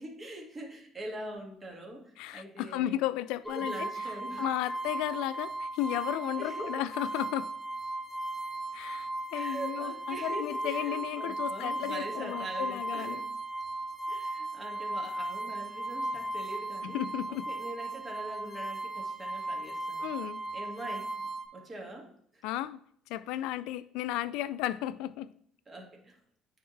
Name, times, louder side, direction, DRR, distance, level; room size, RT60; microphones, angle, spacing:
voice 1, 0.0-3.0 3.5-4.5 5.9-6.7 9.3-13.2 14.1-17.0 17.3-20.1 20.5-21.1 21.5-22.4 25.7-26.2, right 1 dB, 25° right, 0 dB, 1.9 m, -43 dB
voice 2, 2.2-7.5 8.7-13.2 16.8-17.5 20.0-20.4 22.4-22.8 23.1-25.3, left 13 dB, 80° left, 16 dB, 0.3 m, -34 dB
sound 1, 3.5-21.5, right 2 dB, 5° left, 1.0 m, -36 dB
9.3 x 3.6 x 3.2 m, 0.64 s
supercardioid pair, 75°, 0 cm